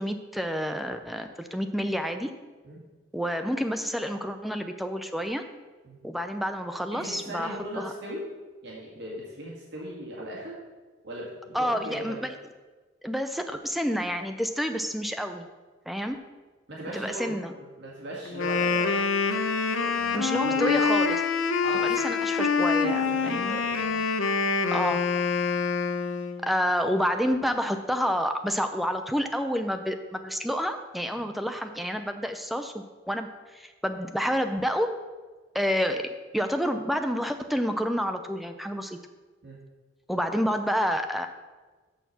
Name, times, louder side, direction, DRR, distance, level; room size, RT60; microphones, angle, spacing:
voice 1, 0.0-2.3 3.1-5.4 6.0-7.9 11.5-12.4 13.0-15.5 15.9-16.2 16.9-17.5 20.1-21.2 21.8-23.6 24.7-25.0 26.4-34.9 35.5-39.0 40.1-41.3, equal, ahead, 6 dB, 0.4 m, -29 dB
voice 2, 6.9-8.2 8.6-10.6 11.0-12.2 16.7-19.1 19.8-20.8 21.6-22.0 22.8-24.0 39.4-39.6, equal, 60° right, -4 dB, 2.2 m, -38 dB
Wind instrument woodwind instrument, 18.2-26.4, left 5 dB, 80° left, 0.7 m, -26 dB
6.7 x 6.4 x 5.9 m, 1.3 s
head